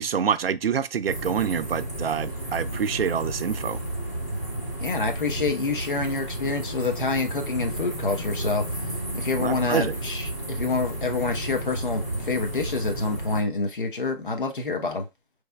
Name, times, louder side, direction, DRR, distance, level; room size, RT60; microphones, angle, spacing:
voice 1, 0.0-3.8 9.4-9.9, right 7 dB, 65° right, 0.5 m, -26 dB
sound 1, 1.1-13.4, right 1 dB, 15° left, 0.6 m, -32 dB
voice 2, 4.8-15.1, left 3 dB, 55° left, 1.0 m, -27 dB
5.2 x 3.3 x 2.2 m
hypercardioid pair, 170°, 32 cm